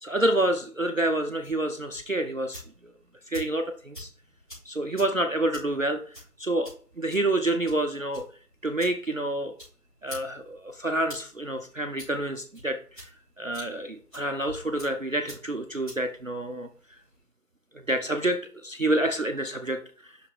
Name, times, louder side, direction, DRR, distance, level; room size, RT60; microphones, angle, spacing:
voice 1, 0.0-2.9 3.3-4.1 4.7-8.2 8.6-9.5 10.0-13.1 13.4-16.7 17.7-20.2, right 1 dB, 55° right, 6 dB, 0.5 m, -28 dB
sound 1, 1.4-17.2, equal, 30° left, 3.4 m, -49 dB
6.0 x 4.8 x 3.5 m, 0.43 s
figure-of-eight pair, 180°, 48 cm